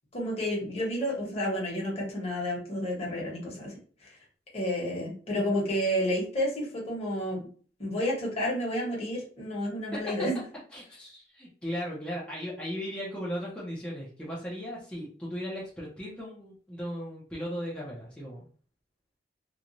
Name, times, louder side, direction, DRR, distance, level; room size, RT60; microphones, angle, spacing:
voice 1, 0.1-3.7 4.0-4.2 4.5-7.4 7.8-10.4, equal, 35° left, -3 dB, 1.1 m, -30 dB
voice 2, 10.7-18.5, equal, 5° left, -7 dB, 0.7 m, -37 dB
3.0 x 2.3 x 2.5 m, 0.42 s
head